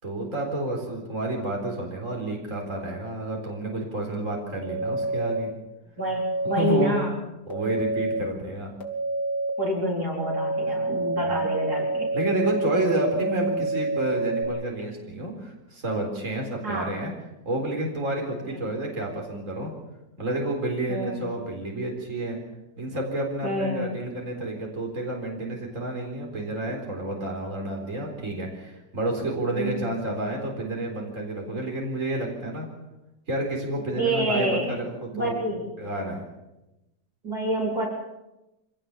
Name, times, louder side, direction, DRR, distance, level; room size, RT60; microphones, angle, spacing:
voice 1, 0.0-5.5 6.6-6.9 7.5-8.7 11.2-11.4 12.1-17.1 17.4-19.7 20.2-22.4 22.8-32.7 33.3-35.4 35.8-36.3, right 1 dB, 45° right, 1 dB, 4.6 m, -30 dB
sound 1, 4.6-5.4 6.0-6.7 7.5-8.2 8.8-9.5 10.1-14.4, right 2 dB, 55° left, 3.5 m, -28 dB
voice 2, 6.0-7.2 9.6-12.1 16.6-17.1 18.5-18.6 20.9-21.3 23.4-23.9 29.5-29.8 33.9-34.7 35.1-35.7 37.2-37.9, right 1 dB, 60° right, -1 dB, 4.6 m, -27 dB
25.0 x 18.0 x 7.3 m, 0.96 s
omnidirectional pair, 1.9 m